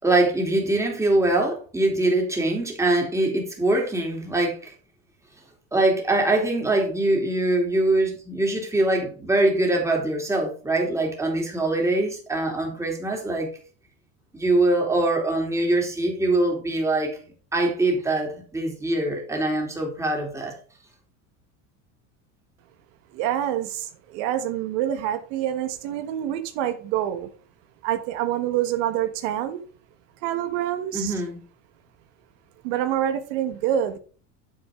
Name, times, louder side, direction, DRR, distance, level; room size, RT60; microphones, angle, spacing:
voice 1, 0.0-4.7 5.7-13.5 14.3-17.2 17.5-20.5 30.9-31.4, right 2 dB, 10° right, 2.9 m, -23 dB
voice 2, 23.1-27.3 27.8-29.6 30.2-31.2 32.6-34.0, right 11 dB, 75° right, 1.5 m, -26 dB
9.2 x 7.6 x 3.7 m
cardioid pair, 150°, 37 cm